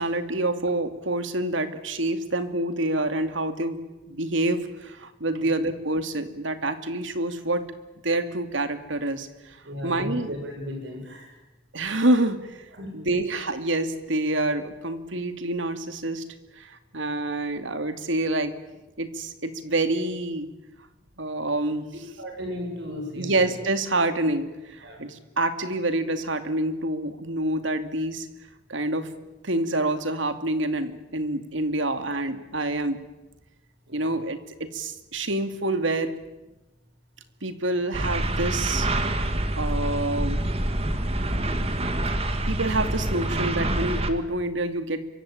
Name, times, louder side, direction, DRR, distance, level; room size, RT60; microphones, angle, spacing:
voice 1, 0.0-3.8 4.1-7.6 8.0-9.6 9.8-10.3 11.7-12.6 12.9-16.2 16.6-18.5 19.0-20.5 21.2-21.9 23.2-28.3 28.7-29.1 29.4-33.0 33.9-36.1 37.4-38.9 39.6-40.4 42.5-45.1, right 2 dB, 80° right, 9 dB, 2.4 m, -27 dB
voice 2, 9.6-11.3 12.7-13.2 22.2-23.5 24.8-25.0 33.9-34.2, left 1 dB, 65° right, 3 dB, 7.5 m, -36 dB
sound 1, 37.9-44.1, right 1 dB, 30° right, 2.0 m, -26 dB
27.0 x 24.0 x 9.1 m, 1.0 s
head